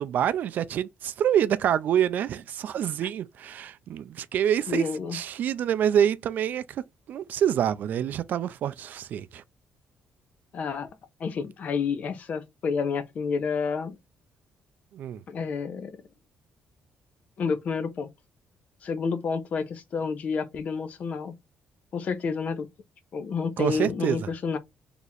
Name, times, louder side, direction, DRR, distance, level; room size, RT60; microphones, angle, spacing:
voice 1, 0.0-4.8 5.1-6.8 7.1-9.4 14.9-15.2 23.6-24.2, right 9 dB, 60° right, 0.3 m, -26 dB
voice 2, 4.7-5.2 10.5-10.9 11.2-14.0 15.3-16.0 17.4-18.1 18.8-21.3 21.9-22.7 23.1-24.6, left 5 dB, 45° left, 0.6 m, -29 dB
2.8 x 2.5 x 4.0 m
cardioid pair, 145°, 3 cm